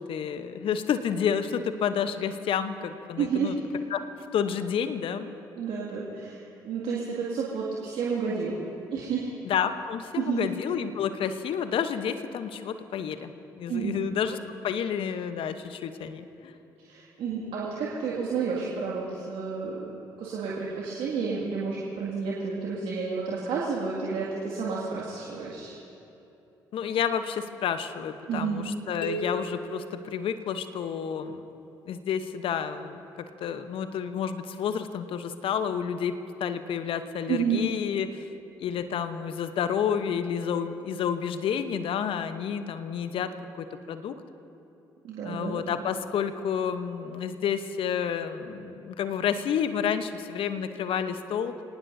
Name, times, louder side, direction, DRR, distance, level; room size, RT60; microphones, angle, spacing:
voice 1, 0.1-3.6 3.9-4.0 4.3-5.3 9.4-13.3 13.6-14.4 14.6-16.5 26.7-31.5 31.9-33.0 33.4-36.1 36.4-38.3 38.6-43.3 43.6-44.1 45.2-51.5, left 8 dB, 60° left, 10 dB, 1.0 m, -30 dB
voice 2, 3.2-3.5 5.6-8.6 8.9-9.3 10.2-10.4 13.7-14.0 16.9-19.9 20.2-25.7 28.3-28.6 37.3-37.6 45.0-45.6, right 5 dB, 65° right, -5 dB, 2.3 m, -30 dB
sound 1, 29.0-31.0, equal, 85° left, 1.1 m, -37 dB
27.0 x 18.5 x 2.8 m, 2.9 s
hypercardioid pair, 45°, 10 cm